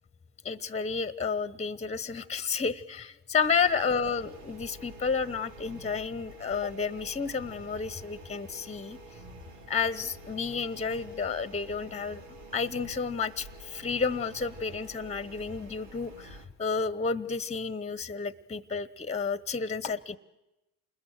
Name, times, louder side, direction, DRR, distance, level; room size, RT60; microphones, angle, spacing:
voice 1, 0.4-9.0 9.7-12.2 12.5-20.2, left 5 dB, 15° left, 16 dB, 1.1 m, -31 dB
sound 1, 3.4-16.4, right 1 dB, 85° right, 3.4 m, -49 dB
28.0 x 20.5 x 7.9 m, 0.96 s
hypercardioid pair, 65°, 39 cm